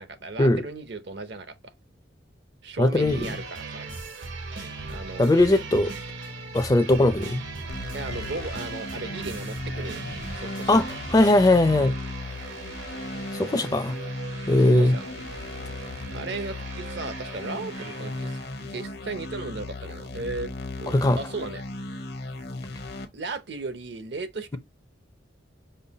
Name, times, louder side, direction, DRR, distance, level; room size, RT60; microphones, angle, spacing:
voice 1, 0.0-1.6 2.6-3.9 4.9-5.3 7.9-10.0 10.3-10.7 14.6-15.0 16.1-20.5 20.8-21.6 23.1-24.6, right 3 dB, 65° right, 0.7 m, -36 dB
voice 2, 2.8-3.2 5.2-5.9 6.5-7.4 10.7-11.9 13.3-14.0 14.5-14.9 20.9-21.2, left 1 dB, 20° left, 0.4 m, -19 dB
sound 1, 3.0-19.0 19.3-19.4, right 3 dB, 85° right, 1.5 m, -39 dB
sound 2, 7.7-23.1, left 2 dB, 60° left, 0.8 m, -37 dB
5.4 x 2.3 x 3.9 m
head